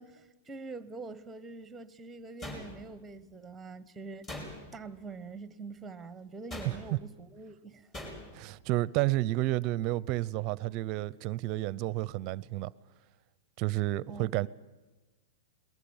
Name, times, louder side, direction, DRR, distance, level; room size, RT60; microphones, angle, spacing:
voice 1, 0.0-4.4 4.7-7.9 14.1-14.3, right 3 dB, 10° right, 1.1 m, -45 dB
sound 1, 2.4-3.1 4.2-4.9 6.5-7.1 7.9-8.5, left 1 dB, 25° left, 5.3 m, -43 dB
voice 2, 6.6-7.0 8.3-12.7 13.6-14.5, right 17 dB, 40° right, 0.6 m, -31 dB
22.0 x 19.5 x 7.2 m
hypercardioid pair, 140°, 0 cm